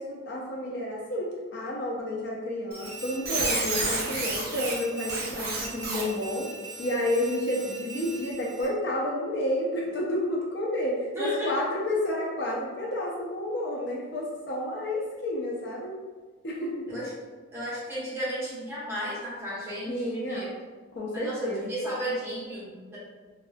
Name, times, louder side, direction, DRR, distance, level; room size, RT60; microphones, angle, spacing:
voice 1, 0.0-6.5 6.8-15.9 16.4-17.0 19.9-20.5 20.9-21.8, left 1 dB, 50° left, -3 dB, 0.4 m, -30 dB
Squeak, 2.7-8.7, right 3 dB, 45° right, 0.5 m, -33 dB
voice 2, 11.1-11.5 16.9-17.1 17.5-20.5 21.1-23.0, equal, 10° right, -10 dB, 0.8 m, -33 dB
2.3 x 2.2 x 2.4 m, 1.3 s
head